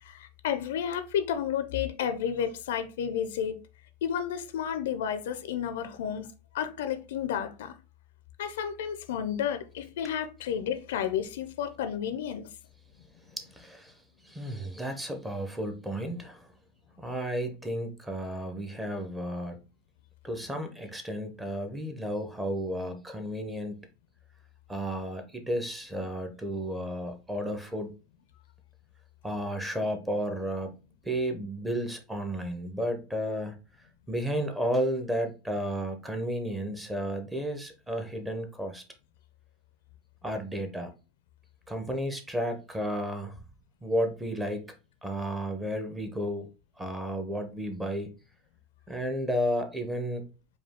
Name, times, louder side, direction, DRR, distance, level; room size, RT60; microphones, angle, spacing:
voice 1, 0.0-3.6 4.0-6.3 6.5-7.8 8.4-12.5, left 8 dB, 80° left, 0.5 m, -31 dB
voice 2, 13.3-14.0 14.2-16.5 17.0-19.6 20.2-23.8 24.7-27.9 29.2-30.7 31.0-33.6 34.1-38.8 40.2-40.9 41.7-43.4 43.8-44.7 45.0-46.5 46.8-48.1 48.9-50.3, equal, 5° right, 0.7 m, -32 dB
4.9 x 2.3 x 3.6 m
supercardioid pair, 145°, 0 cm